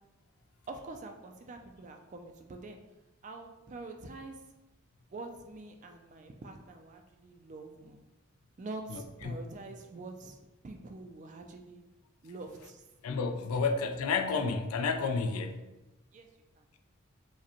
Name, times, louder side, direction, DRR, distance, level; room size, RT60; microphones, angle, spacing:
voice 1, 0.7-2.8 3.2-4.4 5.1-8.0 8.6-10.4 10.6-11.8 12.2-13.1 13.5-13.7 16.1-16.3 16.6-16.7, right 3 dB, 35° right, 4 dB, 0.3 m, -45 dB
voice 2, 8.9-9.4 13.0-15.7, left 4 dB, 80° left, 7 dB, 0.4 m, -31 dB
4.8 x 2.2 x 2.9 m, 1.0 s
head